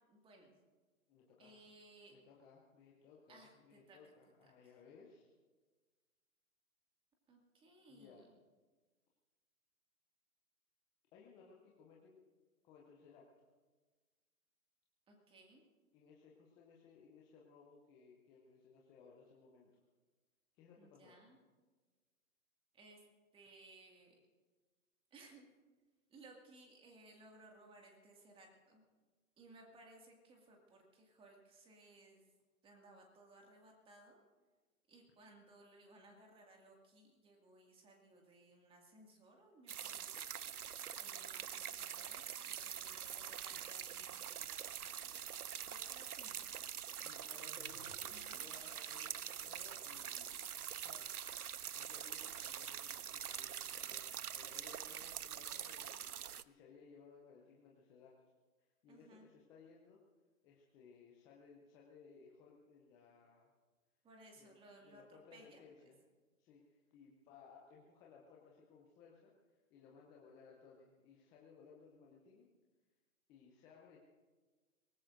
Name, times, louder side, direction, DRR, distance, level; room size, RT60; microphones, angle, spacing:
voice 1, 0.1-0.5 1.4-2.2 3.3-4.0 4.4-4.7 7.3-8.3 15.1-15.6 20.8-21.4 22.7-23.0 23.3-24.1 25.1-25.4 26.1-28.9 29.4-32.2 32.6-34.2 34.9-40.3 40.9-45.4 45.6-46.5 48.1-48.5 58.9-59.3 64.0-65.9, right 2 dB, 10° right, 1 dB, 2.1 m, -62 dB
voice 2, 1.1-1.6 2.1-5.3 7.9-8.3 11.1-12.2 12.6-13.5 15.9-19.7 20.5-21.2 47.0-51.2 51.7-58.2 58.8-60.0 60.4-63.5 64.4-66.0 66.4-72.5 73.3-74.0, left 5 dB, 10° left, -3 dB, 0.5 m, -62 dB
sound 1, 39.7-56.4, right 9 dB, 85° right, 0.6 m, -45 dB
sound 2, 47.4-48.3, right 2 dB, 70° right, 3.9 m, -61 dB
23.5 x 19.0 x 2.6 m, 1.3 s
figure-of-eight pair, 135°, 43 cm